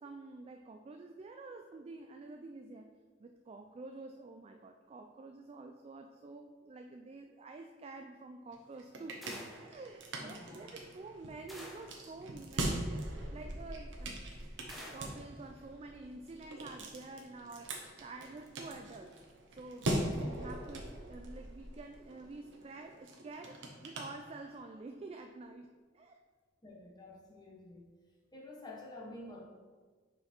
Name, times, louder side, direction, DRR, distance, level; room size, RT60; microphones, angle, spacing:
voice 1, 0.0-2.9 3.2-14.2 14.9-19.2 19.5-26.2, right 3 dB, 35° right, 5 dB, 0.3 m, -49 dB
sound 1, 8.5-24.8, right 1 dB, 75° right, 0.9 m, -42 dB
sound 2, 9.2-9.7 11.5-12.0 14.7-15.2, equal, ahead, 0.9 m, -49 dB
voice 2, 10.2-10.7 26.6-27.8 28.3-29.5, left 2 dB, 25° left, -2 dB, 1.1 m, -49 dB
5.2 x 4.6 x 4.3 m, 1.5 s
head